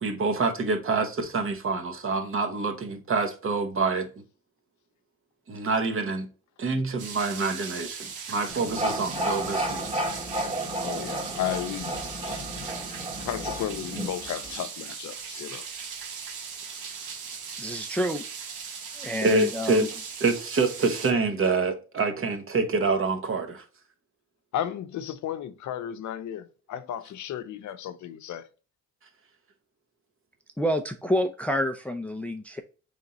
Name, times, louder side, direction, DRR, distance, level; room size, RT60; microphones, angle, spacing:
voice 1, 0.0-4.1 5.5-6.3 6.6-9.9 19.2-19.9 20.2-23.6, right 3 dB, 45° right, 1.1 m, -26 dB
sound 1, 7.0-21.1, right 6 dB, 85° right, 1.1 m, -39 dB
sound 2, 8.5-14.6, right 1 dB, 20° right, 1.2 m, -32 dB
voice 2, 10.8-11.9 12.2-12.5 13.2-15.7 24.5-28.5, left 10 dB, 70° left, 0.6 m, -34 dB
voice 3, 17.6-18.2 19.0-19.9 30.6-32.6, equal, 5° left, 0.4 m, -28 dB
3.8 x 3.5 x 4.0 m
cardioid pair, 90°, 30 cm